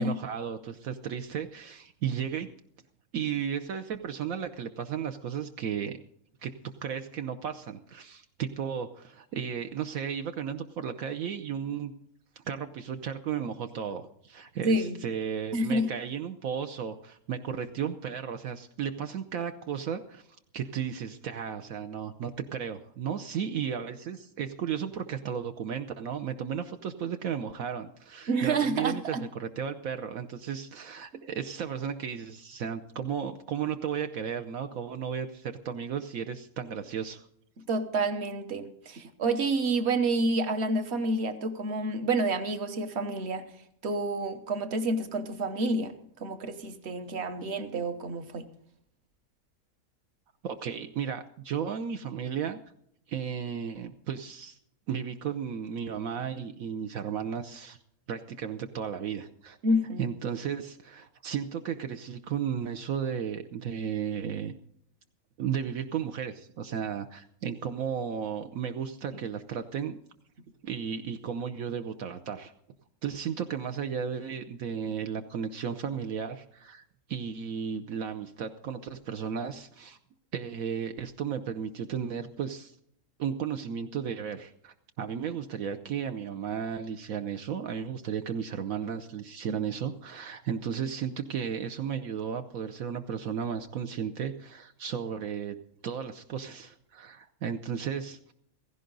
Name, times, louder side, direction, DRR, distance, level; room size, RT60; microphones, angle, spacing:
voice 1, 0.0-2.5 3.1-6.0 6.4-6.5 6.8-11.9 12.4-20.3 20.5-37.2 50.4-52.6 53.1-54.6 54.9-57.8 58.1-59.6 60.0-64.5 65.4-70.0 70.6-72.5 73.0-80.0 80.3-82.8 83.2-95.6 95.8-98.3, right 7 dB, 75° right, 1.2 m, -34 dB
voice 2, 14.6-15.0 15.5-15.9 28.3-29.3 37.7-43.5 43.8-45.9 46.2-48.5 59.6-60.0 89.5-89.6, right 2 dB, 50° right, 1.4 m, -29 dB
16.5 x 15.5 x 3.9 m
omnidirectional pair, 1.5 m